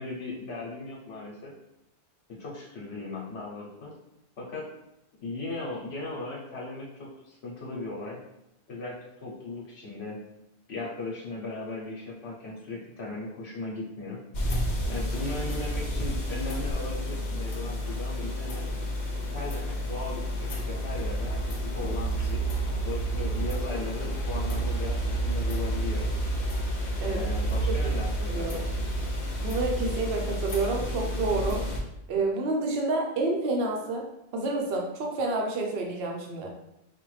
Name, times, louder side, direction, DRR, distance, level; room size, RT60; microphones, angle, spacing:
voice 1, 0.0-1.5 2.3-3.9 4.4-4.7 5.2-8.2 8.7-10.2 10.7-14.2 14.9-18.6 19.3-22.4 22.8-26.1 27.1-28.5, left 2 dB, 75° left, -3 dB, 1.0 m, -37 dB
sound 1, 14.3-31.8, right 1 dB, 50° left, 0.7 m, -30 dB
voice 2, 28.3-28.7 29.4-31.7 32.1-34.1 34.3-36.5, right 3 dB, 70° right, 0 dB, 0.9 m, -29 dB
4.9 x 2.2 x 3.1 m, 0.86 s
omnidirectional pair, 1.1 m